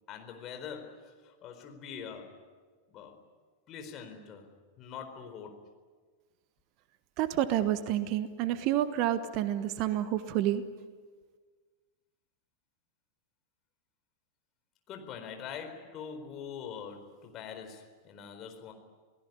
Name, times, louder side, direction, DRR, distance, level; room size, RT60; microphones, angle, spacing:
voice 1, 0.1-2.4 2.9-3.2 3.7-4.5 4.8-5.7 14.9-18.7, left 7 dB, 35° left, 5 dB, 4.4 m, -44 dB
voice 2, 7.2-10.6, right 12 dB, 40° right, 12 dB, 1.3 m, -29 dB
28.5 x 18.0 x 9.8 m, 1.5 s
figure-of-eight pair, 90°, 0 cm